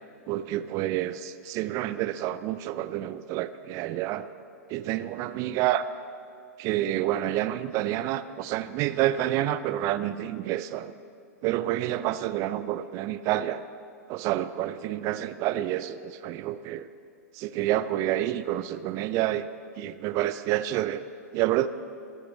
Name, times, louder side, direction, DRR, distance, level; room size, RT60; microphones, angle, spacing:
voice 1, 0.3-4.3 4.7-5.8 6.6-10.9 11.4-13.6 14.1-16.9 17.4-19.5 19.8-21.0 21.3-21.7, right 13 dB, 35° right, 14 dB, 0.5 m, -28 dB
13.5 x 8.0 x 8.2 m, 2.4 s
hypercardioid pair, 110°, 9 cm